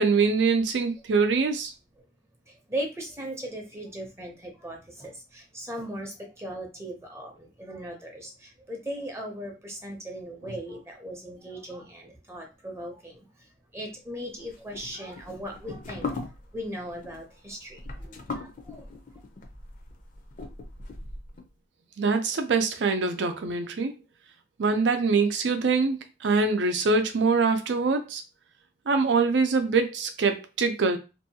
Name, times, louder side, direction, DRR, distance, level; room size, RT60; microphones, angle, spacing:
voice 1, 0.0-1.7 22.0-23.9 24.6-28.2 28.9-31.0, right 4 dB, 85° right, 6 dB, 0.5 m, -24 dB
voice 2, 2.5-18.9, equal, 15° right, 2 dB, 0.6 m, -38 dB
sound 1, 14.4-21.4, left 3 dB, 50° left, 0.5 m, -39 dB
2.6 x 2.3 x 2.7 m, 0.28 s
head